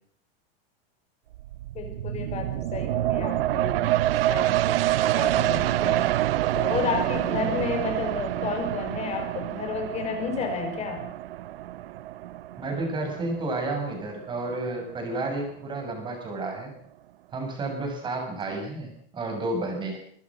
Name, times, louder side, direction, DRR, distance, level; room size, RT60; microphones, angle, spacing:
sound 1, 1.3-14.6 15.0-15.1, right 14 dB, 80° right, 1.0 m, -27 dB
voice 1, 1.7-6.1 6.5-11.1, left 5 dB, 20° left, 6 dB, 5.1 m, -32 dB
voice 2, 12.6-16.7 17.3-20.0, right 2 dB, 15° right, 3 dB, 7.5 m, -31 dB
23.0 x 20.5 x 6.4 m, 0.62 s
supercardioid pair, 165°, 29 cm